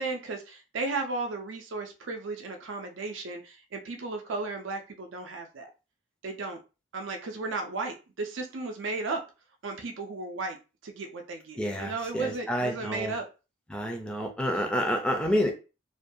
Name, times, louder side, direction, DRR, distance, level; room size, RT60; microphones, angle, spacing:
voice 1, 0.0-5.7 6.2-6.6 6.9-9.2 9.6-10.6 10.8-13.3, right 3 dB, 75° right, 0.5 m, -35 dB
voice 2, 11.6-13.2 13.7-15.5, equal, 5° left, 0.4 m, -28 dB
2.5 x 2.2 x 2.6 m
head